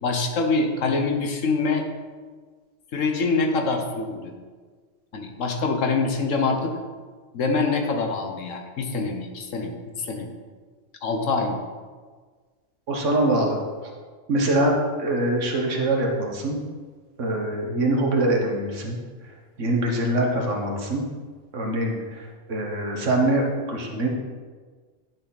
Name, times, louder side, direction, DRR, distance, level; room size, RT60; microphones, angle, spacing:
voice 1, 0.0-1.9 2.9-4.3 5.1-6.7 7.3-10.4 11.0-11.6, left 3 dB, 80° left, 4 dB, 1.4 m, -25 dB
voice 2, 12.9-13.6 14.3-16.6 17.2-19.0 19.6-21.0 21.5-24.1, right 1 dB, 70° right, 0 dB, 1.7 m, -24 dB
10.5 x 6.1 x 4.1 m, 1.5 s
omnidirectional pair, 1.3 m